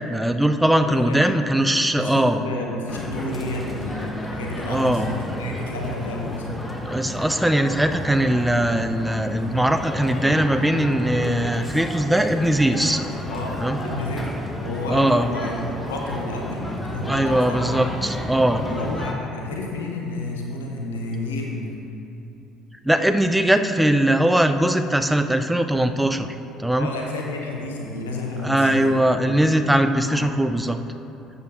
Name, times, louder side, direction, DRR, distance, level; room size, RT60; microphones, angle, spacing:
voice 1, 0.1-2.4 4.6-5.1 6.8-13.0 13.6-13.8 14.9-15.3 17.0-18.6 22.8-26.3 26.6-26.9 28.4-30.8, right 1 dB, 5° right, 8 dB, 0.5 m, -20 dB
voice 2, 0.8-1.2 1.9-6.6 13.3-14.3 14.6-17.6 18.7-21.8 26.8-29.3 30.0-30.3, left 2 dB, 70° left, 0 dB, 1.0 m, -31 dB
sound 1, 2.9-19.1, left 1 dB, 10° left, 1.0 m, -32 dB
12.0 x 8.0 x 2.6 m, 2.7 s
figure-of-eight pair, 55°, 0 cm